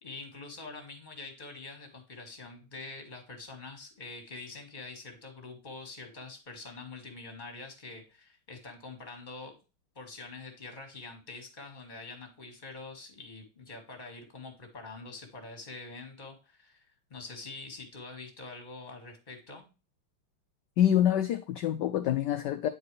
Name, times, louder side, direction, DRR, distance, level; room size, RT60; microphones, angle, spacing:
voice 1, 0.0-9.6 10.0-16.9 17.1-19.6, left 3 dB, 20° left, 1.7 m, -45 dB
voice 2, 20.8-22.7, left 11 dB, 90° left, 0.9 m, -26 dB
9.4 x 4.6 x 3.2 m
omnidirectional pair, 2.4 m